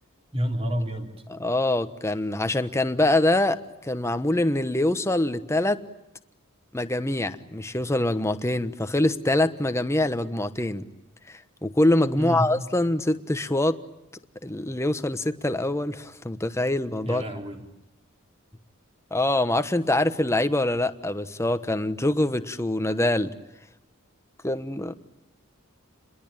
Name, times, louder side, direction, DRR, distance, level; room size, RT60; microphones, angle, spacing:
voice 1, 0.3-1.1 12.2-12.5 17.0-17.6, equal, 25° right, 4 dB, 3.7 m, -28 dB
voice 2, 1.3-5.8 6.7-10.9 11.3-13.8 14.4-17.2 19.1-23.3 24.4-24.9, left 1 dB, 15° left, 10 dB, 1.2 m, -24 dB
29.5 x 21.5 x 8.9 m, 0.91 s
head